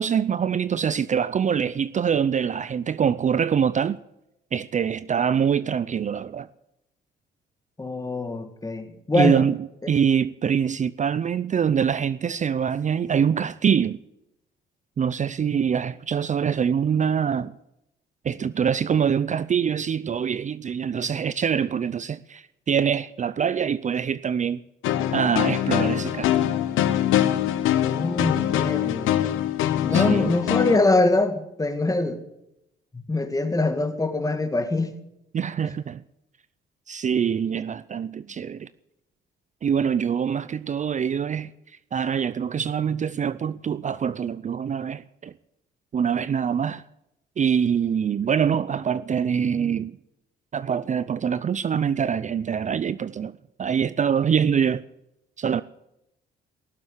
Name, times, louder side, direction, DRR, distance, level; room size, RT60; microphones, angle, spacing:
voice 1, 0.0-4.0 4.5-6.5 9.1-9.6 9.9-14.0 15.0-17.5 18.2-24.6 25.1-26.5 29.9-30.4 35.3-36.0 36.9-38.7 39.6-41.5 41.9-45.3 45.9-46.8 47.4-49.9 50.5-53.3 53.6-54.8 55.4-55.6, right 7 dB, 40° right, 0.5 m, -24 dB
voice 2, 7.8-9.5 27.9-29.2 29.8-32.2 32.9-34.9, left 2 dB, 15° left, 2.0 m, -24 dB
sound 1, 24.8-30.8, left 12 dB, 90° left, 1.1 m, -23 dB
18.0 x 7.6 x 9.8 m
cardioid pair, 90°, 20 cm